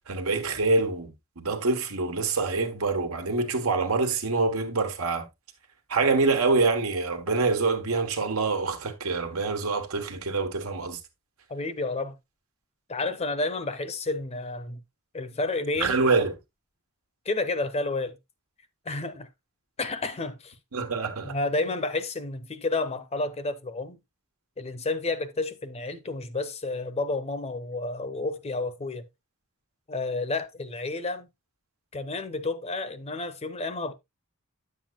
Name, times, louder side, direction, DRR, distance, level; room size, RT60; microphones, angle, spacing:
voice 1, 0.1-5.2 5.9-11.0 15.8-16.3 20.7-21.3, right 3 dB, 80° right, 1.3 m, -26 dB
voice 2, 11.5-12.2 12.9-14.8 15.1-16.0 17.3-18.2 18.9-19.3 19.8-20.5 21.2-24.0 24.6-29.1 29.9-31.3 31.9-33.9, left 2 dB, 30° left, 0.7 m, -30 dB
9.6 x 7.5 x 2.3 m
head